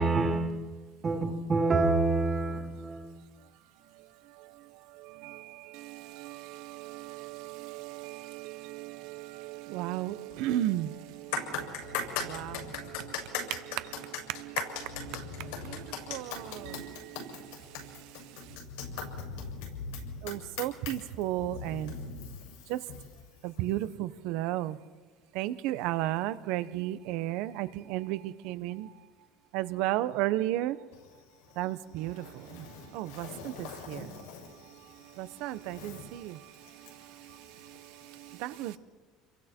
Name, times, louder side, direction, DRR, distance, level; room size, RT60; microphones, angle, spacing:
voice 1, 0.0-0.5 1.0-3.2, right 3 dB, 20° right, 2.4 m, -27 dB
voice 2, 3.9-11.3 16.1-16.3 16.6-16.7 18.2-18.6 20.2-21.9 22.7-22.8 23.4-24.8 25.3-29.1 29.5-30.8 31.6-34.0 34.5-38.8, right 14 dB, 65° right, 1.0 m, -35 dB
voice 3, 11.3-14.2 14.6-17.9 18.1-21.0 21.3-23.0 31.2-31.7 32.0-38.8, left 5 dB, 90° left, 6.9 m, -41 dB
29.0 x 23.0 x 4.5 m
cardioid pair, 155°, 0 cm